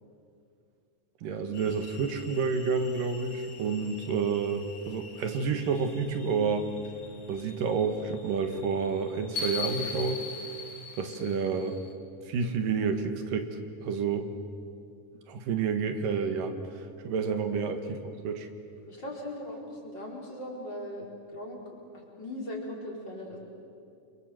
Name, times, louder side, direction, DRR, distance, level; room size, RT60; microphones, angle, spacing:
voice 1, 1.2-6.7 7.3-10.2 11.0-11.8 12.2-14.3 15.3-18.5, right 5 dB, 90° right, 7 dB, 3.4 m, -29 dB
sound 1, 1.5-11.9, left 4 dB, 55° left, 3.0 m, -42 dB
voice 2, 18.9-21.6 21.9-23.4, left 1 dB, 30° left, -2 dB, 5.0 m, -39 dB
29.5 x 25.5 x 7.8 m, 2.4 s
omnidirectional pair, 3.8 m